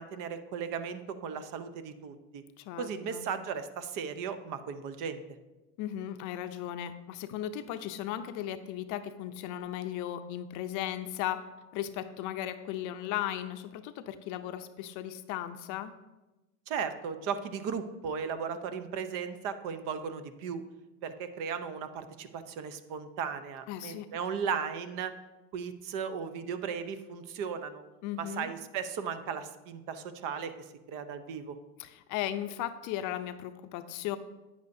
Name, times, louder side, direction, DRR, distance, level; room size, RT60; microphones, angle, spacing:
voice 1, 0.0-2.4 2.8-5.2 16.7-20.6 21.0-25.1 25.5-27.8 28.2-30.5 30.9-31.6, right 6 dB, 50° right, 11 dB, 0.8 m, -36 dB
voice 2, 2.6-3.3 5.8-11.4 11.7-15.9 23.7-24.1 28.0-28.5 31.8-34.2, left 11 dB, 45° left, 10 dB, 0.6 m, -36 dB
9.3 x 8.2 x 2.7 m, 1.1 s
supercardioid pair, 115°, 42 cm